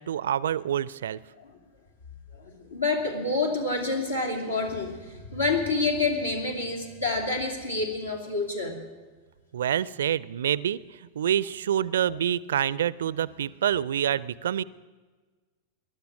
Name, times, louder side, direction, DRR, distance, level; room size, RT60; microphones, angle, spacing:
voice 1, 0.0-1.2 9.5-14.6, right 10 dB, 60° right, 21 dB, 0.4 m, -27 dB
voice 2, 2.3-8.8, left 3 dB, 80° left, 2 dB, 2.6 m, -28 dB
20.0 x 12.0 x 6.0 m, 1.3 s
figure-of-eight pair, 90°, 0 cm